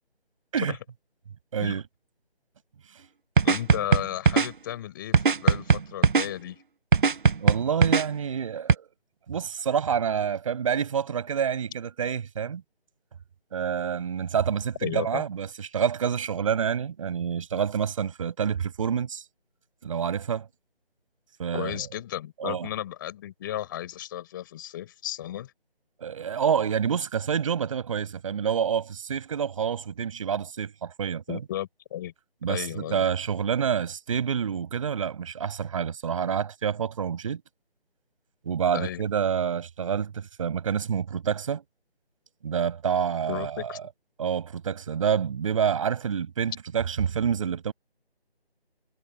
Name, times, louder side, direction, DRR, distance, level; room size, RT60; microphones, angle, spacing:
voice 1, 1.5-1.8 7.4-8.9 9.3-12.6 13.5-19.2 19.8-20.5 21.4-21.8 22.4-22.7 26.0-31.4 32.4-37.4 38.4-41.6 42.4-43.7 44.2-47.7, right 7 dB, 30° right, 6.5 m, -28 dB
voice 2, 3.4-6.6 14.8-15.2 21.5-25.5 31.3-32.1 32.5-33.1 38.7-39.0 43.3-43.8, left 12 dB, 20° left, 4.1 m, -34 dB
sound 1, 3.4-4.5 5.1-6.3 6.9-8.0 8.7-8.8, right 5 dB, 55° right, 0.8 m, -19 dB
figure-of-eight pair, 160°, 31 cm